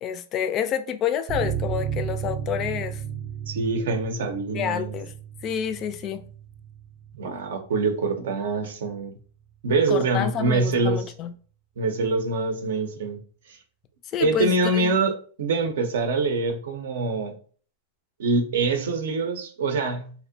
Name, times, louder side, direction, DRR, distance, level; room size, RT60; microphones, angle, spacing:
voice 1, 0.0-3.0 4.5-5.1 5.4-6.2 9.9-11.3 14.1-15.0, left 8 dB, 35° left, 0.3 m, -28 dB
sound 1, 1.3-8.4 8.6-8.8 9.1-9.2, right 8 dB, 30° right, 0.5 m, -34 dB
voice 2, 3.5-4.9 7.1-9.1 9.6-11.0 11.8-13.2 13.5-13.6 14.2-15.1 15.4-17.3 18.2-20.1, right 3 dB, 75° right, 0.6 m, -24 dB
2.5 x 2.1 x 2.6 m
hypercardioid pair, 120°, 0 cm